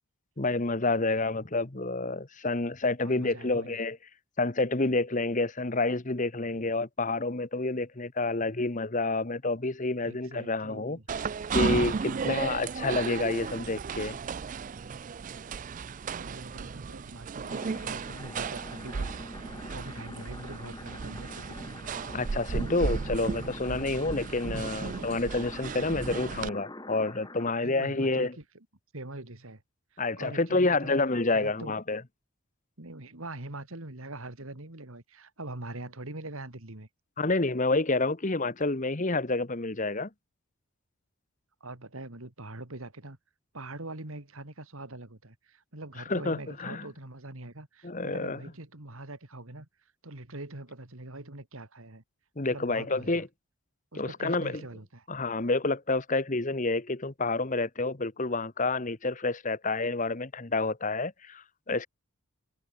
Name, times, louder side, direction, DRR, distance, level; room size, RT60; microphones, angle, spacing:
voice 1, 0.4-4.0 4.4-11.0 11.5-14.2 22.1-28.3 30.0-32.0 37.2-40.1 46.1-46.8 47.8-48.4 52.4-53.3 53.9-54.6 55.1-61.9, left 2 dB, 35° left, 1.1 m, -29 dB
voice 2, 3.0-3.8 10.0-11.0 12.0-12.2 16.1-21.6 24.5-25.0 27.6-28.7 28.9-29.6 29.9-31.0 31.3-31.8 32.8-36.9 41.6-43.2 43.5-52.0 52.5-53.3 53.9-55.1, right 2 dB, 65° right, 2.6 m, -43 dB
sound 1, 11.1-26.5, right 5 dB, 35° right, 0.3 m, -34 dB
sound 2, 17.4-27.5, left 1 dB, 20° left, 6.4 m, -45 dB
head